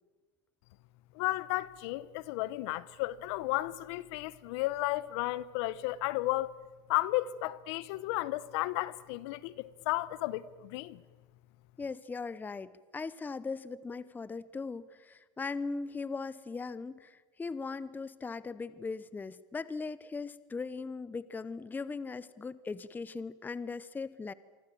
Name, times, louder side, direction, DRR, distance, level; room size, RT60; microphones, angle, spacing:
voice 1, 1.1-6.5 6.9-11.0, left 17 dB, 65° left, 1.1 m, -33 dB
voice 2, 11.8-24.3, left 4 dB, 10° left, 0.8 m, -39 dB
26.0 x 24.5 x 7.7 m
supercardioid pair, 120°, 15 cm